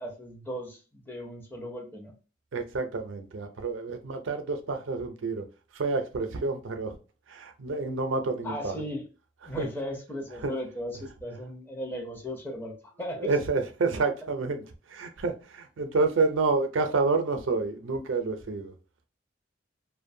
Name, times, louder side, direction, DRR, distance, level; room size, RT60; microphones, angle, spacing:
voice 1, 0.0-2.1 8.4-9.1 9.5-13.3, left 1 dB, 10° left, 0.5 m, -37 dB
voice 2, 2.5-5.5 5.7-7.0 7.3-8.7 9.4-9.7 10.4-10.5 13.2-18.7, right 3 dB, 90° right, 0.5 m, -29 dB
2.5 x 2.1 x 2.6 m
head